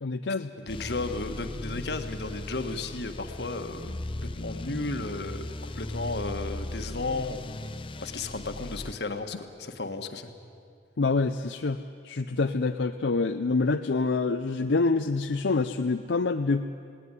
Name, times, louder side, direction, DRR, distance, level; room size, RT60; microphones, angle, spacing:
voice 1, 0.0-0.5 11.0-16.6, left 3 dB, 85° left, 7 dB, 0.6 m, -26 dB
voice 2, 0.6-7.6 8.0-10.3, left 3 dB, 65° left, 7 dB, 1.5 m, -34 dB
sound 1, 0.7-8.9, left 2 dB, 30° left, 0.6 m, -38 dB
19.0 x 18.0 x 9.9 m, 2.4 s
head